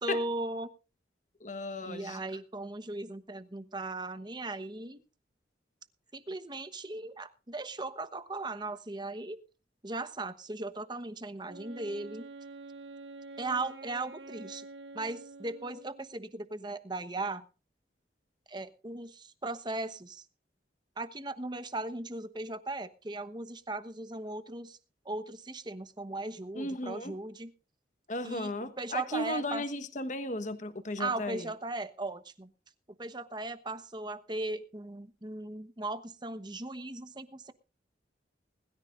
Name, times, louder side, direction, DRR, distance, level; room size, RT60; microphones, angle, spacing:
voice 1, 0.0-0.7 1.8-5.0 6.1-9.4 9.8-12.3 13.4-14.6 14.9-17.4 18.5-20.2 21.0-24.8 25.0-27.5 28.2-29.6 31.0-32.5 33.0-37.5, right 2 dB, 25° right, 1.0 m, -37 dB
voice 2, 1.4-2.2 26.5-27.2 28.1-31.5, left 1 dB, 40° left, 1.3 m, -35 dB
Wind instrument woodwind instrument, 11.4-16.2, right 3 dB, 75° right, 2.0 m, -47 dB
21.0 x 13.5 x 2.6 m
head